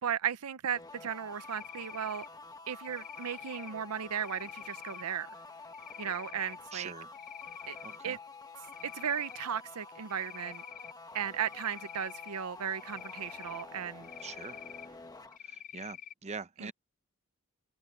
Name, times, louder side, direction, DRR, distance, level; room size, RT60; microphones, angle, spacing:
voice 1, 0.0-2.3 2.7-5.3 6.0-6.9 7.7-7.8 8.0-8.2 8.8-10.6 11.1-14.1 16.6-16.7, right 8 dB, 80° right, 0.6 m, -36 dB
sound 1, 0.7-15.4, left 3 dB, 15° left, 1.1 m, -49 dB
Cricket, 1.4-2.3 2.8-3.7 4.2-5.0 5.7-6.6 7.0-8.0 8.3-9.5 10.1-10.9 11.4-12.3 12.8-13.6 14.0-14.9 15.3-16.1, left 10 dB, 35° left, 0.3 m, -47 dB
voice 2, 6.7-7.1 7.8-8.2 14.2-14.6 15.4-16.7, right 5 dB, 30° right, 0.7 m, -43 dB
head